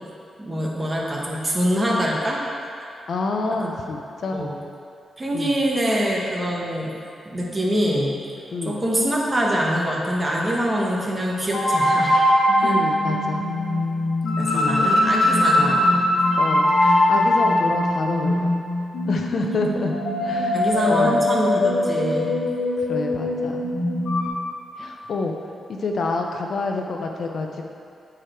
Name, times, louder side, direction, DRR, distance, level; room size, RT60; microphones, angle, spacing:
voice 1, 0.4-2.4 3.6-3.7 4.3-4.6 5.2-6.9 7.2-8.2 8.6-12.1 12.6-12.8 14.4-16.1 20.5-22.3, equal, 20° right, -3 dB, 1.2 m, -24 dB
voice 2, 3.1-4.5 5.3-5.6 8.5-8.8 12.6-13.4 14.5-14.9 16.4-18.6 19.1-20.0 20.2-21.3 22.9-23.6 24.8-25.3 25.7-27.6, left 3 dB, 60° left, 2 dB, 0.6 m, -28 dB
sound 1, 11.5-24.3, left 1 dB, 75° left, 1.4 m, -21 dB
8.6 x 4.8 x 4.4 m, 2.5 s
wide cardioid pair, 130°, 0 cm